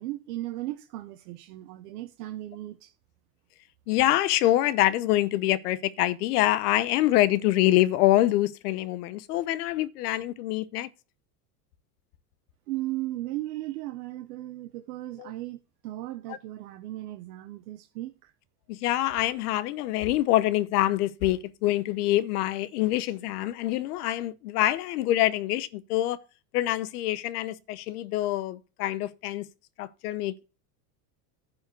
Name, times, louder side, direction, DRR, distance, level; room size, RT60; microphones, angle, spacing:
voice 1, 0.0-2.9 12.7-18.3, right 16 dB, 85° right, 1.0 m, -36 dB
voice 2, 3.9-10.9 15.2-15.3 18.7-26.2 26.5-29.5 29.8-30.4, left 15 dB, 80° left, 1.0 m, -25 dB
10.5 x 4.4 x 6.5 m
supercardioid pair, 150°, 45 cm